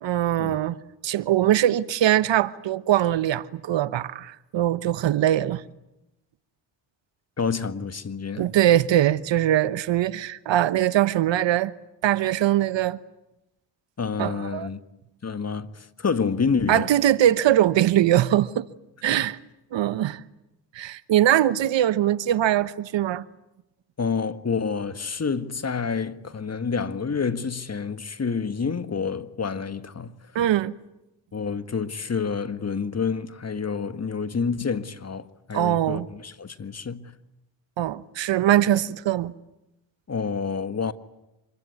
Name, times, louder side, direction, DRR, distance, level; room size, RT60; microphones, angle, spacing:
voice 1, 0.0-0.8 1.0-5.6 8.4-11.7 12.0-13.0 14.2-14.7 16.7-18.7 19.0-19.4 19.7-20.2 20.7-23.2 30.3-30.7 35.5-36.1 37.8-39.3, right 12 dB, 65° right, 1.1 m, -22 dB
voice 2, 7.4-8.5 14.0-14.8 15.2-16.9 19.2-19.3 24.0-30.1 31.3-37.1 40.1-40.9, left 5 dB, 35° left, 1.6 m, -28 dB
26.5 x 22.5 x 9.5 m
supercardioid pair, 65°, 47 cm